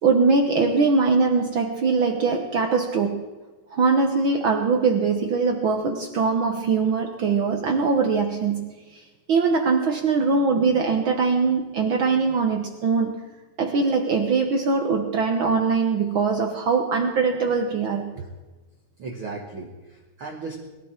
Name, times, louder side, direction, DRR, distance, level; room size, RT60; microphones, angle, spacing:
voice 1, 0.0-3.3 3.7-8.7 9.3-13.2 13.6-18.1, right 4 dB, 85° right, 3 dB, 1.1 m, -22 dB
voice 2, 19.0-20.6, right 4 dB, 50° right, 0 dB, 1.7 m, -36 dB
21.5 x 15.0 x 4.4 m, 1.2 s
omnidirectional pair, 4.0 m